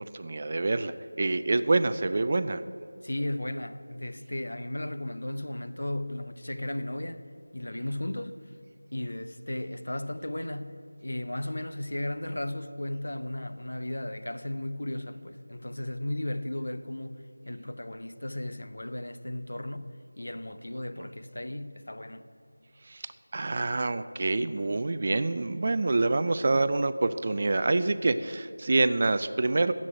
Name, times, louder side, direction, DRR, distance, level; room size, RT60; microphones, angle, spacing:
voice 1, 0.0-2.6 22.9-23.0 23.3-29.7, right 3 dB, 30° right, 0.3 m, -26 dB
voice 2, 3.0-7.2 7.5-8.4 8.9-10.8 11.0-17.2 17.5-22.3, left 1 dB, 55° left, 0.7 m, -35 dB
11.0 x 7.5 x 9.0 m
figure-of-eight pair, 170°, 0 cm